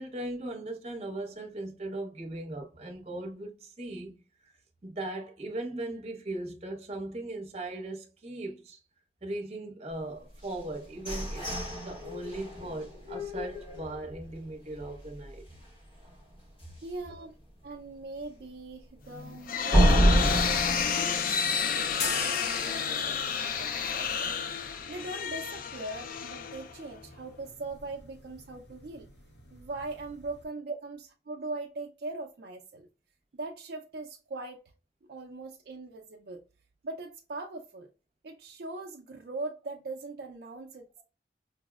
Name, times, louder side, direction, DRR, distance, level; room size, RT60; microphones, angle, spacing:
voice 1, 0.0-4.2 4.8-8.8 9.2-11.5 11.8-15.4, right 2 dB, 35° right, 0.8 m, -38 dB
sound 1, 10.4-14.3 14.8-14.9 15.3-15.7 16.0-16.1 16.6-16.7 19.7-22.4, right 1 dB, 30° left, 0.9 m, -28 dB
voice 2, 16.8-17.4 17.6-29.1 29.5-31.0 31.3-32.9 33.3-34.7 35.0-36.4 36.8-37.9 38.2-41.0, right 2 dB, 60° right, 0.4 m, -41 dB
sound 2, 19.1-27.0, left 7 dB, 50° left, 0.3 m, -31 dB
sound 3, 21.9-30.4, left 4 dB, 70° left, 0.8 m, -42 dB
5.2 x 2.0 x 2.3 m
head